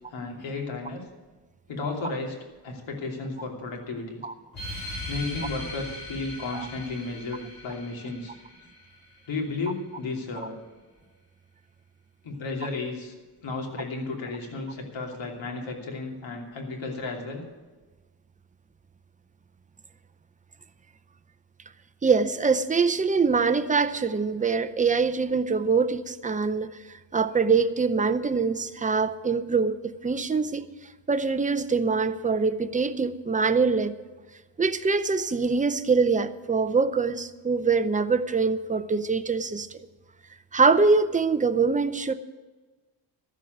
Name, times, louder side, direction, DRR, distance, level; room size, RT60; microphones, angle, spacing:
voice 1, 0.1-1.0 1.7-2.4 2.6-4.2 5.1-8.3 9.3-10.6 12.2-13.1 13.4-17.5, left 3 dB, 90° left, 3.0 m, -33 dB
sound 1, 4.5-9.6, left 1 dB, 50° left, 4.6 m, -39 dB
voice 2, 22.0-26.7 27.1-30.7 31.1-33.9 34.6-39.7 40.5-42.1, right 4 dB, 15° right, 0.6 m, -24 dB
13.0 x 7.5 x 9.3 m
cardioid pair, 125°, 44 cm